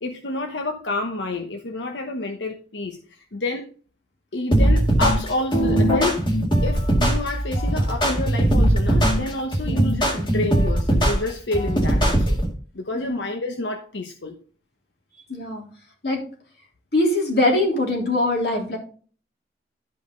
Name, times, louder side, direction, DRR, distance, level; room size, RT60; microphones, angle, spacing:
voice 1, 0.0-3.0 3.3-3.7 4.3-6.2 6.6-12.4 12.7-14.4, left 2 dB, 85° left, 4 dB, 1.0 m, -28 dB
sound 1, 4.5-12.5, right 1 dB, 25° left, 1.9 m, -20 dB
voice 2, 15.3-15.7 16.0-16.2 16.9-18.8, left 2 dB, 60° left, -1 dB, 3.4 m, -22 dB
12.5 x 5.4 x 3.8 m, 0.41 s
head